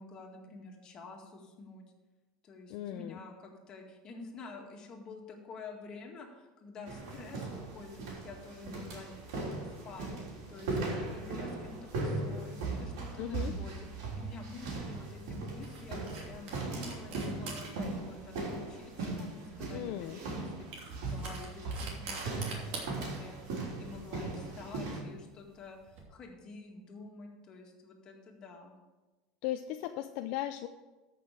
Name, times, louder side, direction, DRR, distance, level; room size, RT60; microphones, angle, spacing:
voice 1, 0.0-1.8 2.4-23.5 23.8-28.7, left 3 dB, 35° left, 2 dB, 1.9 m, -49 dB
voice 2, 2.7-3.2 13.2-13.5 19.7-20.2 29.4-30.7, left 13 dB, 60° left, 8 dB, 0.5 m, -37 dB
sound 1, 6.9-25.0, right 3 dB, 85° right, 3.8 m, -38 dB
sound 2, 13.9-26.0, right 3 dB, 55° right, 2.9 m, -48 dB
13.5 x 5.9 x 5.0 m, 1.2 s
supercardioid pair, 140°, 2 cm